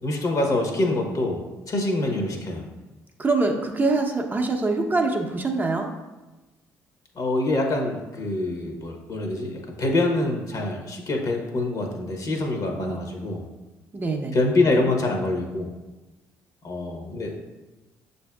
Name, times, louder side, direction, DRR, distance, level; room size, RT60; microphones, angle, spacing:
voice 1, 0.0-2.7 7.2-13.4 14.3-15.7 16.6-17.3, left 2 dB, 45° left, 2 dB, 0.9 m, -25 dB
voice 2, 3.2-5.9 13.9-14.4, right 3 dB, 25° right, 2 dB, 0.6 m, -24 dB
6.7 x 2.6 x 2.3 m, 1.1 s
hypercardioid pair, 50°, 8 cm